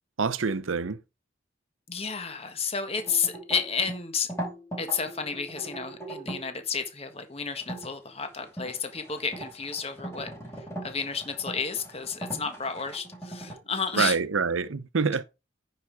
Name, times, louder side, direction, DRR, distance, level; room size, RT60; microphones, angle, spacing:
voice 1, 0.2-1.0 12.3-12.4 14.0-15.2, right 5 dB, 90° right, 0.7 m, -26 dB
voice 2, 1.9-4.3 4.8-10.3 10.5-14.2, left 6 dB, 30° left, 1.5 m, -31 dB
sound 1, 3.0-6.5 7.6-7.9 8.4-13.5, right 1 dB, 15° left, 4.6 m, -39 dB
9.7 x 5.6 x 4.6 m
head